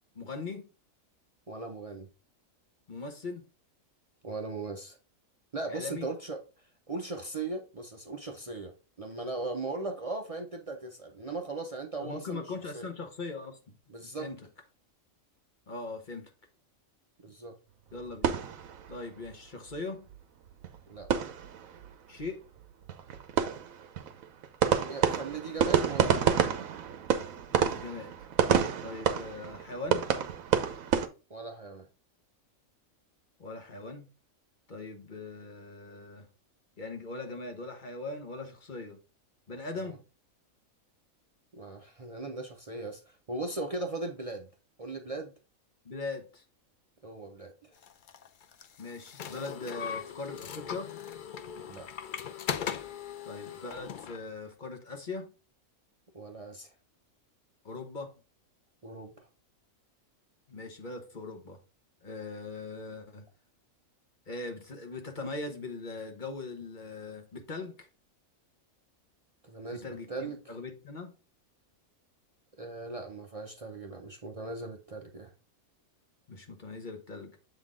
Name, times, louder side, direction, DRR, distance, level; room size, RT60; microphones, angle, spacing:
voice 1, 0.1-0.7 2.9-3.4 5.7-6.1 12.0-13.8 14.2-14.4 15.7-16.3 17.9-18.3 18.9-20.1 22.1-22.5 27.5-28.2 28.8-30.1 33.4-34.1 34.7-36.3 36.8-39.0 39.5-40.0 45.8-46.4 48.8-51.0 53.2-55.3 57.6-58.1 60.5-61.6 62.0-63.3 64.3-67.9 69.7-71.1 76.3-77.4, left 3 dB, 40° left, 1.0 m, -40 dB
voice 2, 1.5-2.1 4.2-5.0 5.5-6.4 6.9-12.4 12.7-12.9 13.9-14.3 17.2-17.6 20.9-21.1 24.6-26.7 31.3-31.9 39.7-40.0 41.5-44.5 44.8-45.3 47.0-47.7 51.7-51.9 56.1-56.7 58.8-59.3 69.4-70.4 72.6-75.3, right 3 dB, 45° right, 0.5 m, -38 dB
sound 1, 17.9-19.4 19.7-19.8 20.1-20.2 20.5-21.9 22.2-22.3 22.6-31.1, right 8 dB, 80° right, 1.1 m, -29 dB
sound 2, 47.8-54.2, left 8 dB, 55° left, 0.5 m, -39 dB
7.4 x 3.9 x 3.6 m
omnidirectional pair, 1.4 m